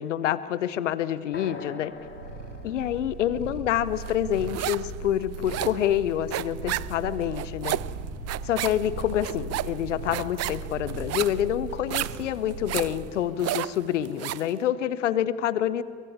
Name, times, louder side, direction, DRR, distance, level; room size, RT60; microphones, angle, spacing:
voice 1, 0.0-1.9 2.6-7.8 8.4-15.8, left 11 dB, 80° left, 16 dB, 0.9 m, -27 dB
sound 1, 1.3-5.3, left 3 dB, 35° left, 7.9 m, -46 dB
Purr, 1.9-13.2, right 4 dB, 85° right, 2.1 m, -38 dB
sound 2, 4.1-4.9 5.2-14.5, right 15 dB, 45° right, 0.6 m, -32 dB
28.0 x 23.0 x 8.6 m, 2.3 s
figure-of-eight pair, 50°, 36 cm